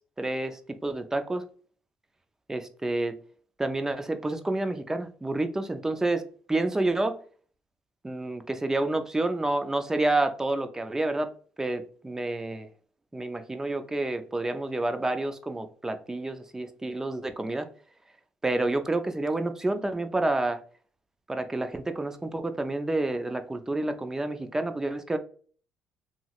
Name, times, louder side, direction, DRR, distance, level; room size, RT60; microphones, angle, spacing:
voice 1, 0.2-1.4 2.5-3.2 3.6-7.1 8.0-11.3 11.6-12.7 13.1-17.7 18.4-20.6 21.3-25.2, right 2 dB, 15° right, 0.4 m, -29 dB
3.0 x 2.7 x 2.4 m
cardioid pair, 90°, 4 cm